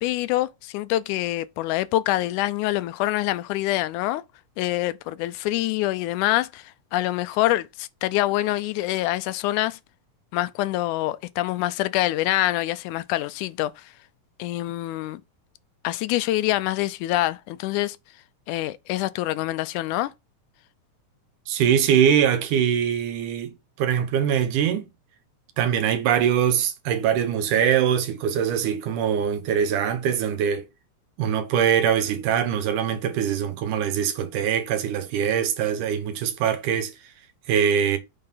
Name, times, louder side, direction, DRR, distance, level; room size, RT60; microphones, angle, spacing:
voice 1, 0.0-4.2 4.6-9.8 10.3-13.9 14.4-15.2 15.8-18.0 18.5-20.1, left 16 dB, 85° left, 2.0 m, -25 dB
voice 2, 21.5-24.9 25.6-30.7 31.2-36.9 37.5-38.0, right 8 dB, 80° right, 2.6 m, -23 dB
6.8 x 3.7 x 5.6 m
omnidirectional pair, 3.6 m